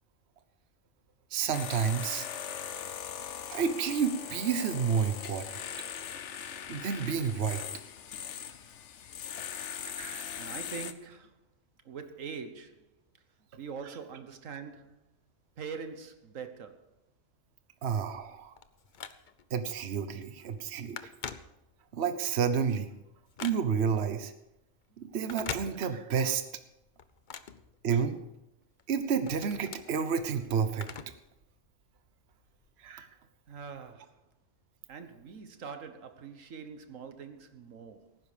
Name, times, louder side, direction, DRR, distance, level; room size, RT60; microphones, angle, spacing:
voice 1, 1.3-2.3 3.5-5.4 6.7-7.6 9.8-10.2 17.8-18.5 19.5-21.1 21.9-22.9 23.4-24.3 25.0-26.4 27.8-28.2 28.9-30.9 32.8-33.1, right 6 dB, 60° right, 1.2 m, -30 dB
sound 1, 1.5-10.9, left 8 dB, 70° left, 1.1 m, -40 dB
voice 2, 10.4-11.4 11.8-12.9 13.6-15.1 15.6-16.9 33.5-34.2 34.9-38.2, right 6 dB, 85° right, 1.5 m, -43 dB
Telephone, 18.2-19.6 20.1-20.3 20.5-22.0 22.4-24.0 25.1-26.3 26.6-28.3 28.8-31.3 31.6-31.7 32.6-32.7, left 6 dB, 45° left, 0.8 m, -44 dB
17.5 x 10.0 x 5.0 m
omnidirectional pair, 1.3 m